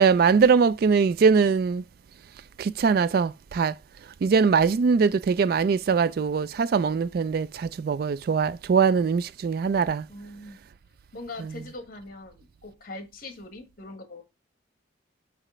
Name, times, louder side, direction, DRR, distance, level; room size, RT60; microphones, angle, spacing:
voice 1, 0.0-1.8 2.6-3.7 4.2-10.0, right 5 dB, 50° right, 0.3 m, -22 dB
voice 2, 10.1-10.6 11.1-14.2, left 2 dB, 50° left, 1.6 m, -41 dB
5.0 x 5.0 x 5.6 m
head